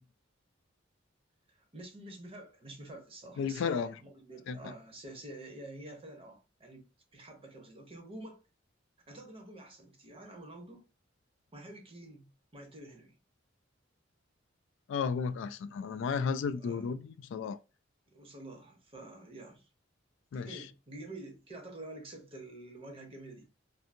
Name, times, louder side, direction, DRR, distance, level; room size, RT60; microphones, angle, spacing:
voice 1, 1.5-6.8 7.1-8.4 9.1-10.8 11.5-13.2 16.6-16.9 18.1-19.7 20.4-23.5, right 2 dB, 30° right, 0.8 m, -48 dB
voice 2, 3.4-3.9 4.5-4.7 14.9-17.6 20.3-20.6, left 6 dB, 65° left, 0.3 m, -33 dB
2.6 x 2.6 x 2.6 m
head